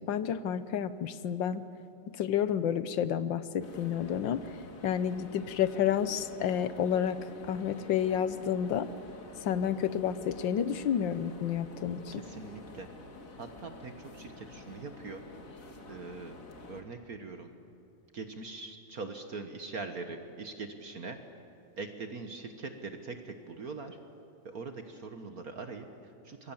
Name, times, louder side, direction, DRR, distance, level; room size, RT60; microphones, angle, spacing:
voice 1, 0.0-1.7 2.1-4.5 4.8-8.9 9.4-12.0, left 9 dB, 70° left, 14 dB, 1.5 m, -30 dB
sound 1, 3.6-16.8, left 2 dB, 40° left, 2.1 m, -48 dB
voice 2, 12.1-12.9 13.4-15.2 15.9-16.4 16.7-17.5 18.1-21.2 21.8-24.0 24.5-26.5, right 4 dB, 50° right, 7 dB, 1.6 m, -42 dB
26.5 x 23.0 x 7.3 m, 2.8 s
omnidirectional pair, 2.2 m